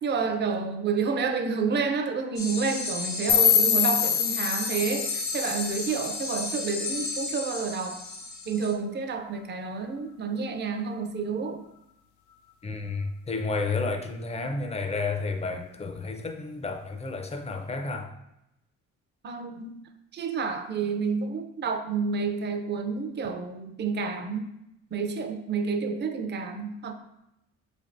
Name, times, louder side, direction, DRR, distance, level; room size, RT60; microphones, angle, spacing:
voice 1, 0.0-8.0 8.5-11.6 19.2-19.8 20.1-24.5 24.9-26.9, right 5 dB, 35° right, 0.5 m, -29 dB
sound 1, 2.4-8.7, left 3 dB, 65° left, 0.9 m, -33 dB
sound 2, 3.3-6.3, left 8 dB, 85° left, 0.5 m, -25 dB
voice 2, 12.6-18.1, left 3 dB, 20° left, 0.5 m, -31 dB
4.7 x 3.4 x 2.5 m
cardioid pair, 90°, 30 cm